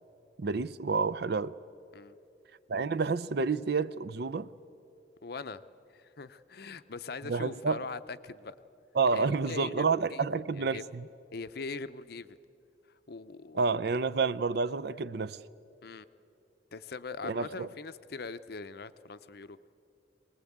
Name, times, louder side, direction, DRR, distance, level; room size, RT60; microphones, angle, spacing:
voice 1, 0.4-1.5 2.7-4.5 7.3-7.8 8.9-11.1 13.5-15.4 17.2-17.7, right 4 dB, 55° right, 15 dB, 0.5 m, -29 dB
voice 2, 5.2-8.6 9.1-10.8 11.3-12.4 13.1-13.6 15.8-16.0 16.7-19.7, left 4 dB, 55° left, 13 dB, 0.6 m, -42 dB
23.0 x 19.0 x 8.6 m, 2.7 s
head